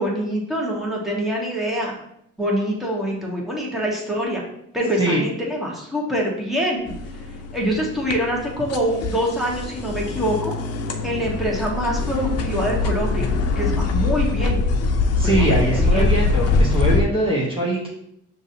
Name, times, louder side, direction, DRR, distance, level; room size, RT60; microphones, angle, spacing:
voice 1, 0.0-1.9 2.4-4.4 4.7-6.9 7.5-10.5 11.0-14.6 15.2-16.1, equal, ahead, -4 dB, 1.4 m, -25 dB
sound 1, 6.9-17.0, left 3 dB, 55° left, 0.6 m, -23 dB
voice 2, 15.2-17.9, right 1 dB, 15° right, -5 dB, 1.0 m, -22 dB
6.0 x 2.7 x 2.7 m, 0.74 s
cardioid pair, 90°, 30 cm